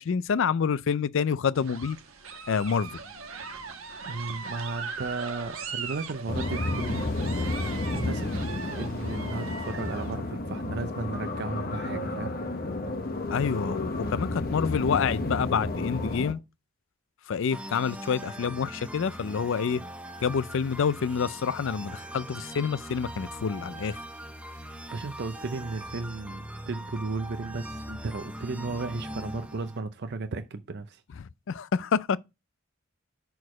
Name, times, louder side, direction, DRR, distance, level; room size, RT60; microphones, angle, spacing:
voice 1, 0.0-2.0 2.5-3.0 13.3-16.4 17.3-19.8 20.2-24.0 31.2-32.2, left 6 dB, 65° left, 0.4 m, -27 dB
sound 1, 1.5-10.1, right 5 dB, 85° right, 1.3 m, -39 dB
voice 2, 4.1-7.1 7.4-8.3 8.7-12.4 24.7-31.0, right 3 dB, 55° right, 0.5 m, -35 dB
sound 2, 6.3-16.3, left 2 dB, 45° left, 1.0 m, -31 dB
sound 3, 17.5-29.8, right 1 dB, 5° right, 0.7 m, -41 dB
6.3 x 4.6 x 4.8 m
head